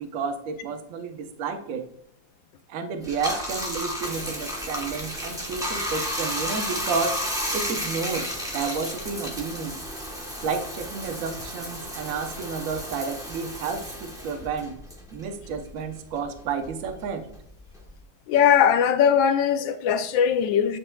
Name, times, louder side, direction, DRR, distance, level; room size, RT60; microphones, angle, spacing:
voice 1, 0.0-1.8 2.7-7.2 7.5-9.8 10.4-14.8 15.1-17.3, right 5 dB, 60° right, 0.9 m, -31 dB
Bathtub (filling or washing), 3.0-15.8 16.2-18.0, equal, 5° right, 0.5 m, -32 dB
voice 2, 18.3-20.8, left 8 dB, 85° left, 1.4 m, -20 dB
9.1 x 4.6 x 2.2 m
omnidirectional pair, 2.0 m